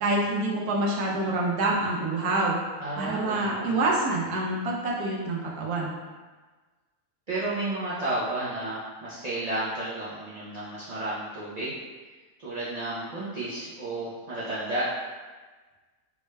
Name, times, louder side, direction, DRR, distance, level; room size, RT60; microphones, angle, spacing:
voice 1, 0.0-2.6 3.0-5.9, right 2 dB, 90° right, -2 dB, 1.2 m, -26 dB
voice 2, 2.8-3.8 7.3-11.8 12.4-14.9, right 2 dB, 70° right, -10 dB, 0.3 m, -32 dB
3.5 x 2.2 x 3.1 m, 1.3 s
omnidirectional pair, 1.6 m